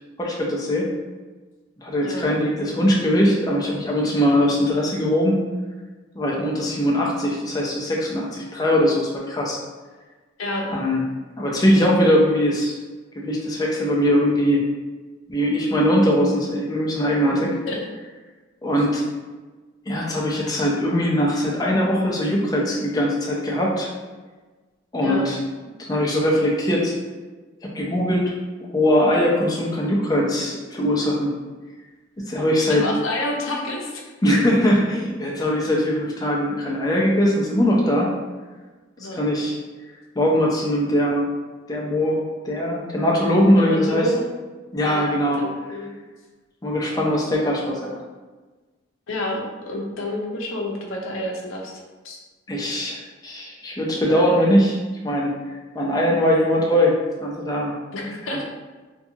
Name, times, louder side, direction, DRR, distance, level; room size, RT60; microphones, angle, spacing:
voice 1, 0.2-0.9 1.8-5.4 6.1-9.6 10.7-11.0 11.4-12.8 13.2-14.6 15.3-17.6 18.6-19.0 19.9-23.9 24.9-25.4 25.9-26.9 27.7-28.3 28.7-31.3 32.3-32.9 34.2-38.1 39.1-39.6 40.2-41.3 41.7-44.1 44.7-45.4 45.7-45.8 46.6-47.9 52.5-54.8 55.0-55.3 55.7-57.7, equal, 20° left, -2 dB, 0.4 m, -21 dB
voice 2, 17.3-17.8 25.0-25.3 32.7-34.1 39.0-39.2 43.6-44.2 44.8-45.0 45.4-45.9 49.1-51.7 52.0-52.2 57.9-58.4, left 1 dB, 80° left, 0 dB, 0.5 m, -29 dB
2.7 x 2.2 x 2.6 m, 1.3 s
head